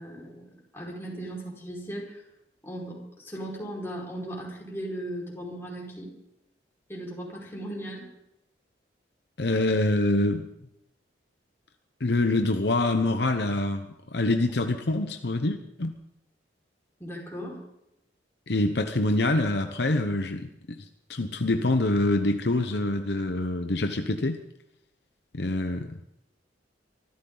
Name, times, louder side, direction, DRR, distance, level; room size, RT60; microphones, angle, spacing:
voice 1, 0.0-2.2 2.6-6.1 6.9-8.1 17.0-17.6, right 1 dB, 15° left, -4 dB, 5.0 m, -37 dB
voice 2, 9.4-10.5 12.0-16.0 18.5-20.8 21.1-24.4 25.3-26.0, left 2 dB, 65° left, 7 dB, 0.9 m, -25 dB
24.5 x 14.0 x 4.0 m, 0.84 s
head